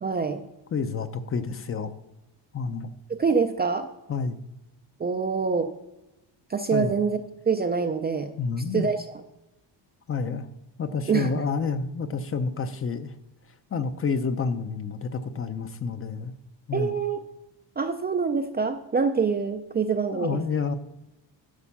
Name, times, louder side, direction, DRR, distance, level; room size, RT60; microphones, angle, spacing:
voice 1, 0.0-0.4 3.1-3.9 5.0-5.7 6.5-7.2 7.5-8.3 8.7-9.2 11.1-11.3 16.7-17.2 17.8-20.4, right 5 dB, 25° right, 6 dB, 0.3 m, -25 dB
voice 2, 0.7-1.9 2.5-2.9 4.1-4.4 6.7-6.9 8.4-8.9 10.1-10.5 10.8-13.1 13.7-16.3 16.7-16.9 20.1-20.8, left 5 dB, 30° left, 11 dB, 0.5 m, -29 dB
11.5 x 4.4 x 7.2 m, 0.96 s
cardioid pair, 170°, 45 cm